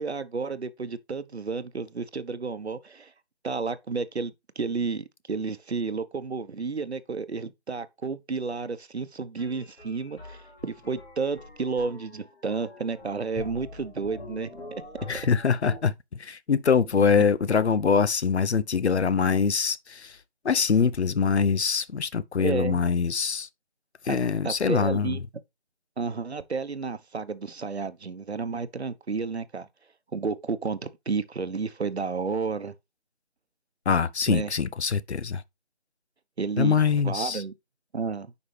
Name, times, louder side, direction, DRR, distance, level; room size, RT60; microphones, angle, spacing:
voice 1, 0.0-3.1 3.4-14.8 22.4-22.8 24.4-25.2 26.0-29.7 30.1-32.7 34.3-34.5 36.4-37.5 37.9-38.3, right 4 dB, 75° right, 1.0 m, -31 dB
sound 1, 9.4-15.8, left 2 dB, 60° left, 4.7 m, -45 dB
voice 2, 15.1-20.2 20.4-23.5 24.0-25.2 33.9-35.4 36.6-37.4, left 6 dB, 80° left, 0.7 m, -24 dB
9.7 x 5.2 x 3.2 m
figure-of-eight pair, 170°, 33 cm